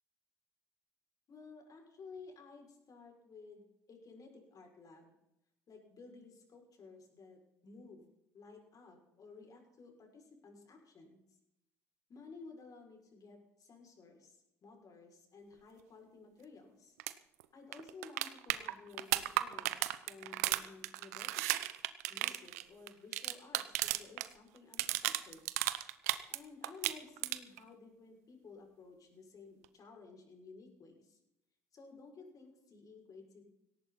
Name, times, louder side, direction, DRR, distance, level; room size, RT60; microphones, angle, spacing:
voice 1, 1.3-5.1 5.7-8.1 8.3-11.2 12.1-16.9 17.5-21.7 22.1-25.4 26.3-31.2 31.7-33.4, left 4 dB, 45° left, 2 dB, 6.4 m, -55 dB
sound 1, 17.0-17.1 17.4-17.5 17.7-24.3 24.6-26.4 26.6-27.6 29.6-29.7, right 16 dB, 80° right, 0.8 m, -34 dB
18.0 x 18.0 x 4.3 m, 0.83 s
hypercardioid pair, 55°, 8 cm